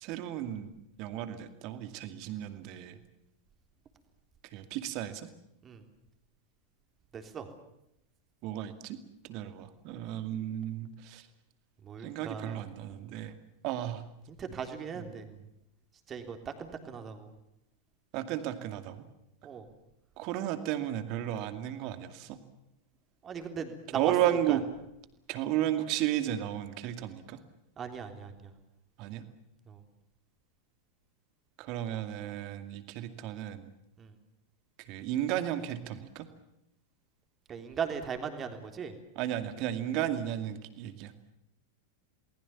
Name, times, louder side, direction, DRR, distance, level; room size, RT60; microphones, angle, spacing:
voice 1, 0.0-0.7 1.0-3.0 4.5-5.3 8.4-9.0 9.2-11.3 12.0-13.3 13.6-14.0 14.4-14.5 15.0-15.1 18.1-19.0 20.2-22.4 23.9-24.6 25.3-27.4 29.0-29.2 31.6-33.7 34.8-36.3 39.2-41.1, right 12 dB, 40° right, 10 dB, 2.3 m, -33 dB
voice 2, 7.1-7.5 11.8-12.6 14.3-15.3 16.1-17.3 19.4-19.6 23.2-24.1 24.5-24.6 27.8-28.5 29.7-29.8 34.0-34.2 37.5-38.9, right 7 dB, 25° right, 6 dB, 3.4 m, -38 dB
29.0 x 20.0 x 7.2 m, 0.83 s
figure-of-eight pair, 90°, 0 cm